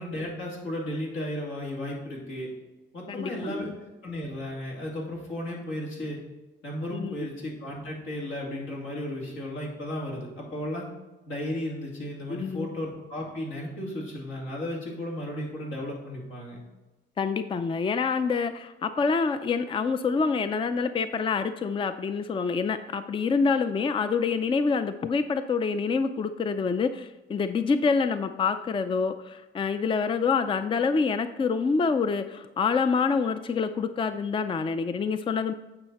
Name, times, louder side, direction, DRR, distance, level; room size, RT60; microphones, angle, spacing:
voice 1, 0.0-2.5 2.9-3.7 4.0-6.2 6.6-10.9 11.3-16.6, left 1 dB, 80° left, -2 dB, 2.7 m, -34 dB
voice 2, 3.1-3.7 6.9-7.3 12.3-12.7 17.2-35.5, left 5 dB, 25° left, 10 dB, 0.4 m, -26 dB
8.8 x 5.6 x 4.1 m, 1.1 s
cardioid pair, 90°, 20 cm